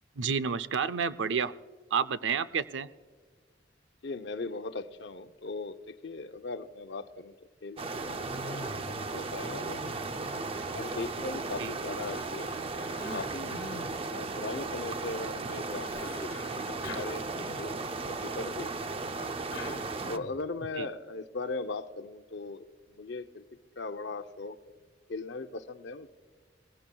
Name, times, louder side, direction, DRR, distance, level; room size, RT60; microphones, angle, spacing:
voice 1, 0.2-1.5 1.9-2.9 11.6-11.7 20.8-20.9, right 6 dB, 80° right, 15 dB, 0.5 m, -30 dB
voice 2, 4.0-7.3 7.6-8.2 9.0-9.8 10.4-13.6 14.1-17.3 17.6-19.0 20.1-23.4 23.8-24.7 25.1-26.1, left 3 dB, 65° left, 9 dB, 0.6 m, -39 dB
sound 1, 7.8-20.2, right 3 dB, 30° right, 0.5 m, -36 dB
Cough, 8.2-9.1 9.4-11.4 12.0-13.9 15.9-17.9 19.1-20.5, left 2 dB, 85° left, 1.3 m, -44 dB
20.0 x 16.0 x 2.3 m, 1.5 s
head